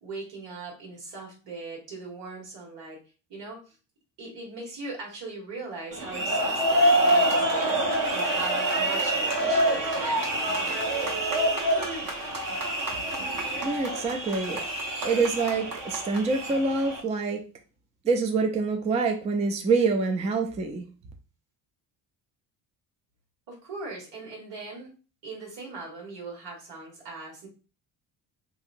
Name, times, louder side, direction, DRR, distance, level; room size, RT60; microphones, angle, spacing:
voice 1, 0.0-3.0 3.3-3.7 4.2-10.9 23.5-24.9 25.2-27.5, right 3 dB, 80° right, -1 dB, 1.6 m, -40 dB
sound 1, 5.9-17.0, right 1 dB, 50° right, 1.0 m, -26 dB
voice 2, 13.6-14.6 15.0-17.4 18.0-20.9, right 4 dB, 15° right, 4 dB, 0.3 m, -26 dB
2.9 x 2.8 x 2.5 m, 0.35 s
cardioid pair, 105°, 43 cm